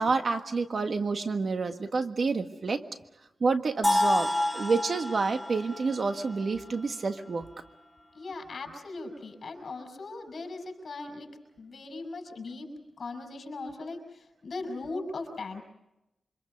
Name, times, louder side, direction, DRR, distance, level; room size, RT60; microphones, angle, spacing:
voice 1, 0.0-2.8 3.4-7.5, right 4 dB, 60° right, 7 dB, 1.5 m, -28 dB
sound 1, 3.8-7.7, left 1 dB, 5° right, 3.7 m, -30 dB
voice 2, 8.1-11.3 11.6-12.7 13.0-15.6, left 3 dB, 65° left, 5 dB, 5.6 m, -39 dB
28.5 x 25.0 x 5.3 m, 0.91 s
wide cardioid pair, 90°, 0 cm